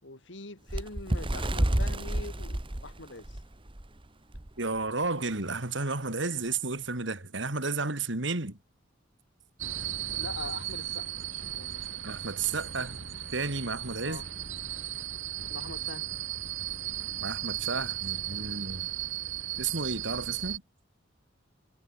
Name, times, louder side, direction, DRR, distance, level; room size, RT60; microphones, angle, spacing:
voice 1, 0.0-3.4 10.2-11.8 14.0-14.2 15.5-16.1, left 2 dB, 70° left, 3.0 m, -43 dB
Bird, 0.7-3.9 4.3-4.5 4.8-5.0 5.8-5.9, right 1 dB, 25° right, 1.4 m, -30 dB
voice 2, 4.6-8.6 12.0-13.0 13.3-14.2 17.2-18.9 19.6-20.6, right 3 dB, 70° right, 2.8 m, -32 dB
sound 1, 9.6-20.6, right 12 dB, 85° right, 2.6 m, -36 dB
head